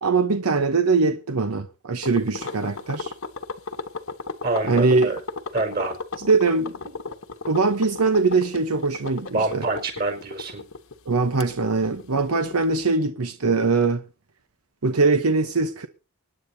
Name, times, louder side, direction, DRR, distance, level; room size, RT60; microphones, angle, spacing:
voice 1, 0.0-3.1 4.6-5.2 6.3-6.7 7.5-9.6 11.1-14.0 14.8-15.9, right 4 dB, 85° right, 1.0 m, -22 dB
sound 1, 2.0-12.9, left 4 dB, 65° left, 1.2 m, -34 dB
voice 2, 4.4-5.2 5.5-5.9 9.3-10.6, right 3 dB, 45° right, 4.6 m, -26 dB
24.5 x 10.0 x 2.8 m
head